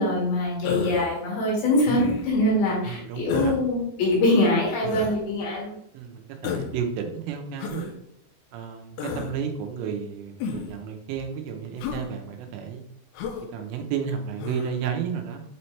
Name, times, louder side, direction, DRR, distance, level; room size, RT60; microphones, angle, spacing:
voice 1, 0.0-5.8, left 1 dB, 65° left, -4 dB, 3.8 m, -23 dB
Human voice, 0.6-1.1 1.9-2.4 3.3-3.6 4.8-5.2 6.4-6.8 7.6-7.9 9.0-9.3 10.4-10.8 11.8-12.0 13.1-13.4 14.4-14.7, left 6 dB, 80° left, 2.4 m, -31 dB
voice 2, 2.8-3.5 5.9-7.9 8.5-12.8 13.5-15.4, right 7 dB, 85° right, 4 dB, 3.3 m, -32 dB
7.8 x 4.2 x 3.2 m, 0.74 s
omnidirectional pair, 5.5 m